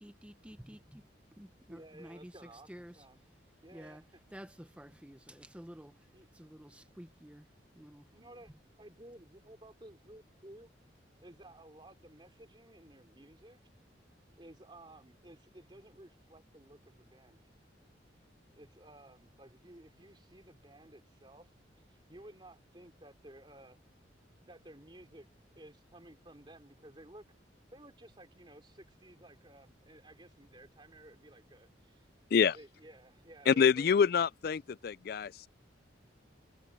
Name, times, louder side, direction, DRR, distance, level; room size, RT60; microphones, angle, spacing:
voice 1, 0.0-3.0 3.7-4.0 4.3-6.1 6.3-8.1, equal, 5° right, 0.8 m, -51 dB
voice 2, 1.7-3.2 3.6-4.2 6.1-6.3 8.1-8.5 8.8-10.7 11.2-13.6 14.4-17.6 18.1-23.8 24.5-25.3 25.6-27.2 27.7-32.1 32.5-34.1, right 1 dB, 25° right, 3.2 m, -55 dB
voice 3, 33.5-35.5, left 6 dB, 55° left, 0.3 m, -26 dB
head